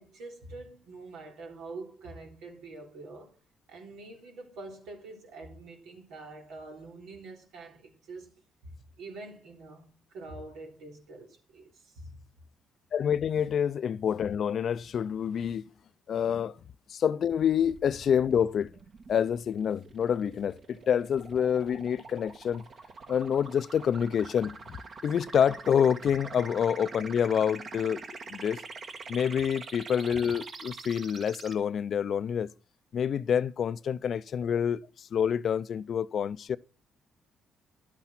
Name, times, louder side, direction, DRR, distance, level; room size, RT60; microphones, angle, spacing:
voice 1, 0.0-3.3 3.7-8.3 8.6-12.2 26.2-26.3, right 2 dB, 85° right, 3.5 m, -45 dB
voice 2, 12.9-15.6 16.1-16.6 16.9-18.7 19.1-22.7 23.1-24.8 25.0-28.0 28.3-28.6 29.1-32.5 32.9-36.6, left 8 dB, 60° left, 0.5 m, -27 dB
sound 1, 17.3-31.5, right 4 dB, 50° right, 1.8 m, -45 dB
11.5 x 8.2 x 6.0 m
cardioid pair, 90°, 0 cm